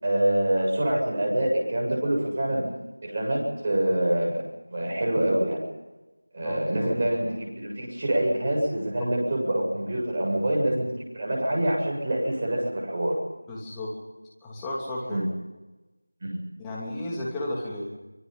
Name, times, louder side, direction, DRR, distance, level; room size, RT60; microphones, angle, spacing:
voice 1, 0.0-2.7 3.0-4.4 4.7-5.6 6.3-10.9 11.1-13.2 15.1-15.2 16.2-16.4, right 1 dB, 25° right, -2 dB, 7.7 m, -25 dB
voice 2, 6.4-6.9 13.5-13.9 14.4-15.2 16.6-17.9, left 1 dB, 5° left, -5 dB, 2.9 m, -33 dB
25.5 x 22.5 x 5.5 m, 1.1 s
figure-of-eight pair, 175°, 0 cm